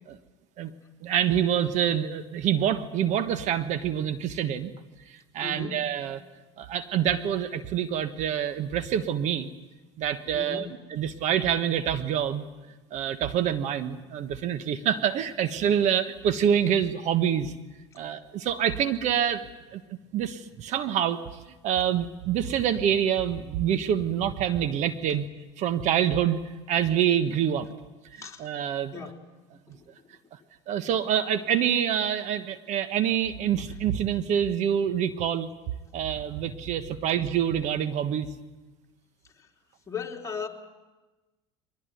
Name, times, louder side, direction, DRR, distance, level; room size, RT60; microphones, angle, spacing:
voice 1, 1.0-4.7 5.1-6.2 6.6-9.5 10.0-12.4 12.9-17.5 17.9-19.4 19.7-19.8 20.1-21.2 21.6-25.2 25.6-26.4 26.7-27.7 28.4-28.9 30.7-35.5 35.9-38.3, right 9 dB, 55° right, 10 dB, 1.3 m, -26 dB
voice 2, 5.4-5.8 10.3-10.8 28.2-28.5 28.9-29.2 29.7-29.8 39.4-39.5 39.9-40.5, left 6 dB, 20° left, 0 dB, 3.5 m, -37 dB
23.5 x 19.5 x 9.3 m, 1.2 s
supercardioid pair, 90°, 15 cm